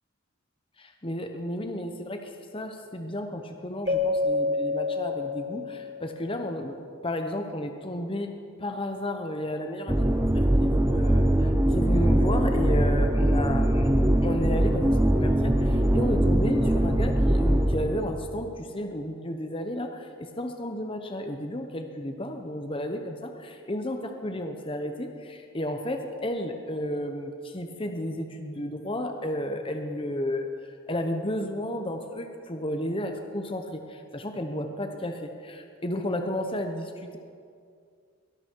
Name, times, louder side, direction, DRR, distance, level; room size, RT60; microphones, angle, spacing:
voice 1, 0.8-6.8 7.0-8.3 8.6-13.9 14.2-37.2, left 1 dB, 25° left, 5 dB, 1.0 m, -32 dB
Keyboard (musical), 3.9-6.3, left 3 dB, 35° right, 1.3 m, -28 dB
sound 1, 9.9-18.2, right 1 dB, 10° right, 0.6 m, -22 dB
22.5 x 12.5 x 4.7 m, 2.3 s
head